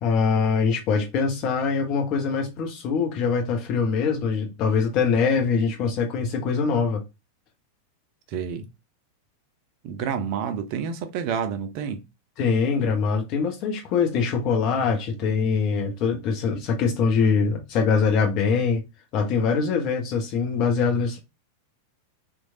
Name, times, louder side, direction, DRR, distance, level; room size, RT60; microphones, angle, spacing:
voice 1, 0.0-7.0 12.4-18.8 19.1-21.2, left 5 dB, 40° left, 0.9 m, -23 dB
voice 2, 8.3-8.7 9.8-12.0, right 7 dB, 45° right, 0.5 m, -29 dB
3.0 x 2.3 x 2.6 m
figure-of-eight pair, 90°, 0 cm